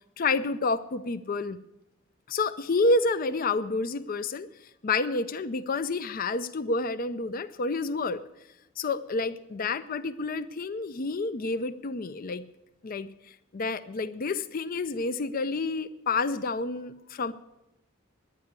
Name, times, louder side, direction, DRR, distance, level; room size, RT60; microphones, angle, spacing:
voice 1, 0.2-1.6 2.3-4.5 4.8-8.2 8.8-12.4 12.8-13.1 13.5-17.3, left 3 dB, 45° left, 11 dB, 0.5 m, -29 dB
10.5 x 9.0 x 9.5 m, 0.92 s
head